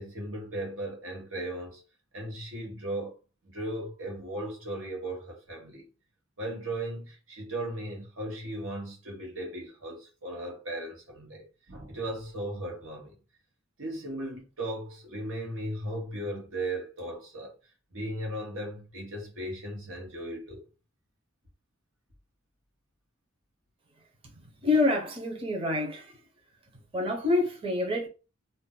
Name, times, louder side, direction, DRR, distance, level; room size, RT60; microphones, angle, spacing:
voice 1, 0.0-1.8 2.1-3.1 3.4-5.8 6.4-13.1 13.8-17.5 17.9-20.6, right 1 dB, 85° right, 1.1 m, -37 dB
voice 2, 24.6-26.1 26.9-28.1, left 2 dB, 30° right, 0.6 m, -26 dB
2.5 x 2.1 x 3.7 m
head